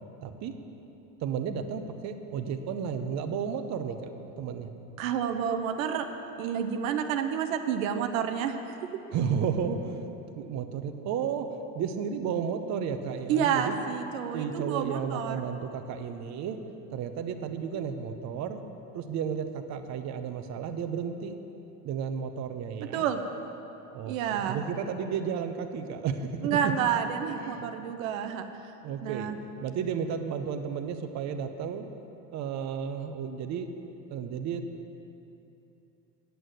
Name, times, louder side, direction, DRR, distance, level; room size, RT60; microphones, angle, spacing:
voice 1, 0.2-0.5 1.2-4.1 4.4-4.7 9.1-10.0 10.4-11.5 11.7-13.8 14.3-16.6 16.9-18.6 18.9-21.3 21.8-23.1 23.9-26.7 27.3-27.8 28.8-29.3 29.6-31.9 32.3-33.7 34.1-34.6, right 7 dB, 45° right, 7 dB, 0.8 m, -33 dB
voice 2, 5.0-6.0 6.4-8.8 13.3-15.4 22.9-23.2 24.0-24.6 26.4-28.4 29.0-29.4, right 8 dB, 85° right, 6 dB, 0.8 m, -29 dB
9.4 x 6.4 x 7.8 m, 3.0 s
supercardioid pair, 105°, 39 cm